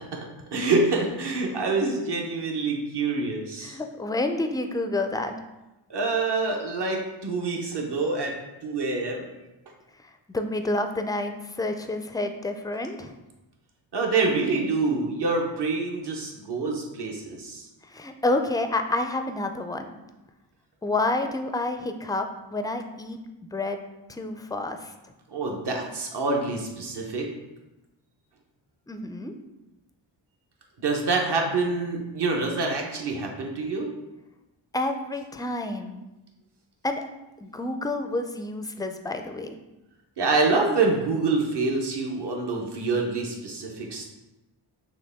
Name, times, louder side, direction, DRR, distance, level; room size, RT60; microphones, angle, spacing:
voice 1, 0.5-3.8 5.9-8.4 8.6-9.3 13.9-17.6 25.3-27.3 30.8-33.9 40.2-44.1, right 3 dB, 60° right, 1 dB, 1.0 m, -26 dB
voice 2, 3.6-5.3 10.3-13.1 17.9-20.0 20.8-23.2 23.5-23.8 24.1-24.9 28.9-29.3 34.7-36.0 36.8-37.0 37.4-39.6, left 2 dB, 10° left, 6 dB, 0.3 m, -29 dB
6.2 x 2.2 x 3.5 m, 1.0 s
cardioid pair, 55°, 47 cm